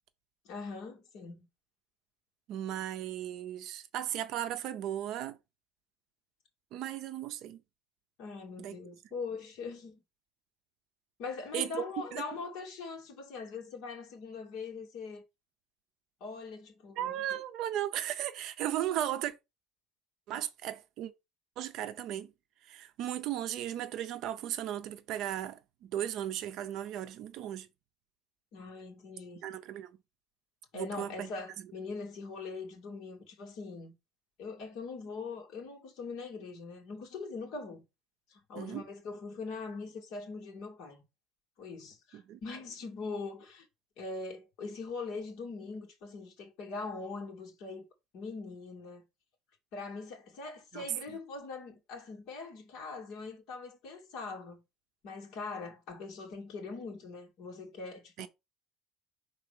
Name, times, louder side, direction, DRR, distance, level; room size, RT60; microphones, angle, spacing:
voice 1, 0.4-1.5 8.2-10.0 11.2-15.2 16.2-17.2 28.5-29.4 30.7-33.9 34.4-37.8 38.3-41.0 41.6-43.7 44.0-47.8 48.1-49.0 49.7-54.6 55.0-58.3, left 4 dB, 50° left, 2.4 m, -42 dB
voice 2, 2.5-5.4 6.7-7.6 8.6-8.8 11.5-11.8 12.1-12.2 17.0-19.3 20.3-21.1 21.6-22.3 22.6-27.7 29.4-30.0 30.7-31.3 38.5-38.8 42.1-42.4 50.7-50.9 58.2-58.3, right 11 dB, 45° right, 0.6 m, -36 dB
5.6 x 3.9 x 5.1 m
cardioid pair, 180°, 0 cm